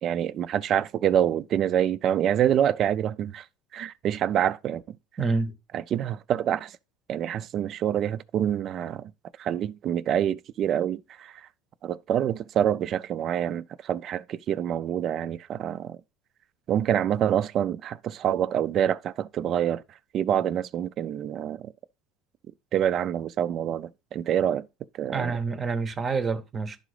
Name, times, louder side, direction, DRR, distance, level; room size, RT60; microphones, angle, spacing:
voice 1, 0.0-3.5 3.7-4.8 5.7-6.8 7.1-9.1 9.4-11.5 11.8-16.0 16.7-19.8 20.1-21.7 22.7-24.7 25.0-25.3, right 10 dB, 35° right, 0.4 m, -26 dB
voice 2, 5.2-5.6 25.1-26.8, right 4 dB, 20° right, 0.8 m, -27 dB
11.5 x 3.9 x 4.8 m
cardioid pair, 160°, 0 cm